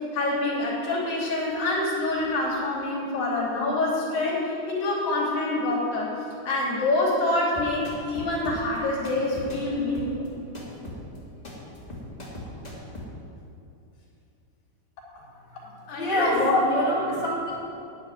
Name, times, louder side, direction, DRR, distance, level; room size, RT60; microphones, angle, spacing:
voice 1, 0.1-6.1 6.4-10.1 15.9-16.6 17.1-17.2, left 2 dB, 60° left, -6 dB, 4.6 m, -26 dB
sound 1, 7.5-13.1, left 1 dB, 15° left, 1.6 m, -39 dB
voice 2, 16.0-17.7, equal, 85° right, -6 dB, 0.7 m, -27 dB
12.0 x 7.5 x 9.7 m, 2.6 s
omnidirectional pair, 4.8 m